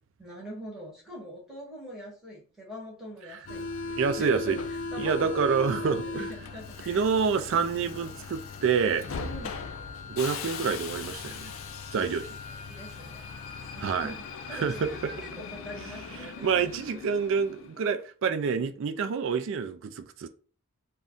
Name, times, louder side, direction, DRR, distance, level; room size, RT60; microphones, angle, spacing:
voice 1, 0.2-7.0 9.2-9.6 12.5-17.0, equal, ahead, 1.2 m, -44 dB
Subway metro underground, 3.4-17.8, left 4 dB, 60° left, 0.4 m, -38 dB
voice 2, 4.0-4.6 5.0-6.3 6.9-9.0 10.1-11.5 11.9-12.4 13.8-14.1 14.5-14.9 16.4-20.3, right 6 dB, 60° right, 0.3 m, -27 dB
2.6 x 2.2 x 3.5 m
head